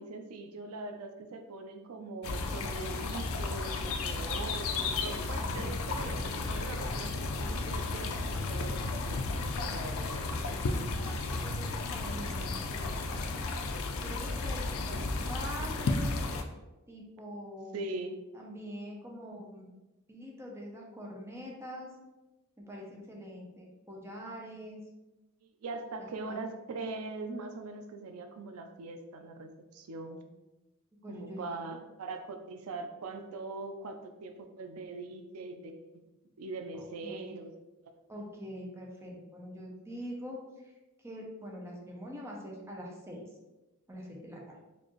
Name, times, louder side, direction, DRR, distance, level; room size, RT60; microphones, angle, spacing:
voice 1, 0.0-10.4 17.7-18.2 25.4-30.2 31.1-35.9 36.4-37.5, right 3 dB, 85° right, 6 dB, 0.4 m, -42 dB
sound 1, 2.2-16.4, left 3 dB, 70° left, 0.4 m, -33 dB
voice 2, 4.1-4.5 5.5-5.7 10.9-13.4 14.0-16.1 16.9-17.8 18.3-19.7 20.1-21.9 22.6-24.8 26.0-26.4 31.0-31.8 36.7-37.3 38.1-40.4 41.0-43.2 43.9-44.6, equal, 10° right, -2 dB, 0.7 m, -44 dB
4.3 x 2.6 x 3.0 m, 1.0 s
head